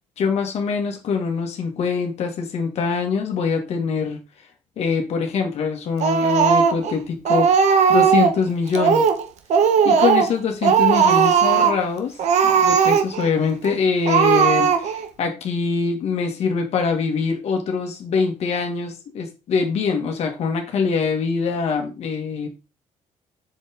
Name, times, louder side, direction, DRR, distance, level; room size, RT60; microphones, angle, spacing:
voice 1, 0.2-4.2 4.8-7.5 7.9-9.1 9.8-12.2 12.4-22.5, left 5 dB, 50° left, 4 dB, 1.9 m, -23 dB
Speech, 6.0-6.9 7.3-8.4 8.7-9.2 9.5-10.4 10.6-11.8 12.2-13.3 13.6-13.7 14.1-15.1, right 7 dB, 60° right, 1.2 m, -17 dB
7.5 x 6.6 x 3.6 m, 0.29 s
cardioid pair, 180°, 13 cm